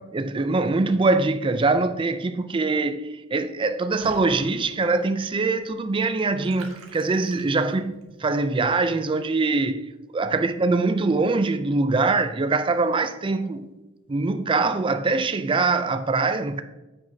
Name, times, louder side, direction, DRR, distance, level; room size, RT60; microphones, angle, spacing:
voice 1, 0.1-3.0 3.3-9.9 10.1-13.7 14.1-16.6, right 3 dB, 25° right, 0.4 m, -23 dB
Water / Bathtub (filling or washing), 4.0-8.0, right 2 dB, 70° right, 1.3 m, -47 dB
9.4 x 7.9 x 2.7 m
head